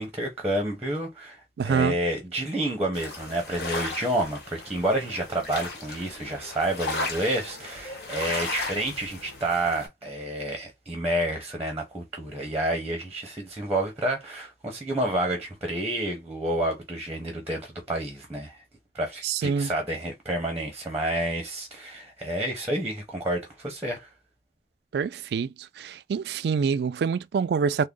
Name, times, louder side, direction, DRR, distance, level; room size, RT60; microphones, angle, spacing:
voice 1, 0.0-18.6 18.9-24.1, right 1 dB, 15° right, 0.8 m, -29 dB
voice 2, 1.6-2.0 19.2-19.7 24.9-25.5 25.8-27.9, right 6 dB, 65° right, 0.3 m, -26 dB
sound 1, 2.9-9.9, left 2 dB, 60° left, 1.4 m, -35 dB
3.5 x 2.1 x 3.7 m
head